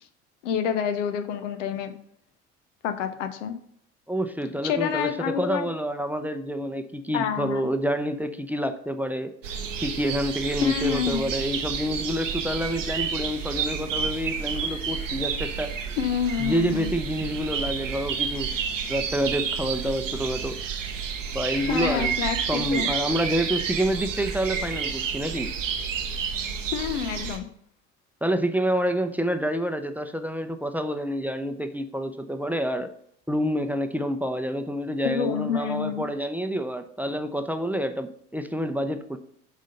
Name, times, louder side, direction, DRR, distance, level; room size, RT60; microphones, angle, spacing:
voice 1, 0.4-1.9 2.8-3.5 4.6-5.7 7.1-7.7 10.6-11.3 16.0-16.9 21.6-22.9 26.7-27.5 35.0-36.1, left 8 dB, 75° left, 10 dB, 0.7 m, -28 dB
voice 2, 4.1-9.3 9.8-15.7 16.4-18.6 18.9-20.6 21.3-22.1 22.5-25.5 28.2-32.9 33.3-39.2, equal, 5° right, 8 dB, 0.6 m, -28 dB
sound 1, 9.4-27.4, right 6 dB, 85° right, 0.8 m, -30 dB
6.2 x 4.1 x 5.2 m, 0.68 s
figure-of-eight pair, 55°, 37 cm